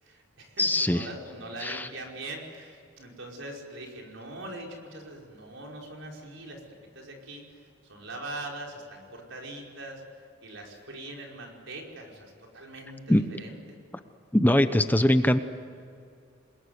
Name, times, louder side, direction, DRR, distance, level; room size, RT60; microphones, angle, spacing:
voice 1, 0.0-6.6 6.9-10.0 10.4-13.8, right 1 dB, 75° right, 0 dB, 5.1 m, -42 dB
voice 2, 0.6-1.1 1.6-1.9 13.1-13.2 14.3-15.4, left 1 dB, 10° left, 9 dB, 0.8 m, -22 dB
28.0 x 21.5 x 9.7 m, 2.4 s
head